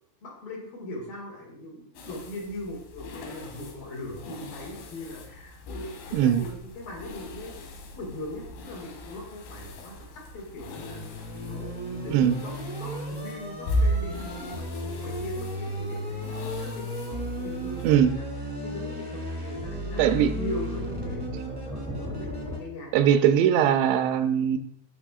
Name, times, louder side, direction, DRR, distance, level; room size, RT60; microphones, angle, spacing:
voice 1, 0.2-7.7 7.9-12.2 12.4-16.2 16.6-23.5, left 1 dB, 60° left, -2 dB, 3.5 m, -40 dB
sound 1, 2.0-18.0, equal, 85° left, 3.5 m, -37 dB
voice 2, 6.1-6.4 12.1-12.3 17.8-18.1 20.0-20.3 22.9-24.6, right 9 dB, 85° right, 8 dB, 2.8 m, -20 dB
sound 2, 10.7-22.6, equal, 5° right, 1.2 m, -34 dB
14.5 x 6.7 x 2.4 m, 0.74 s
omnidirectional pair, 5.0 m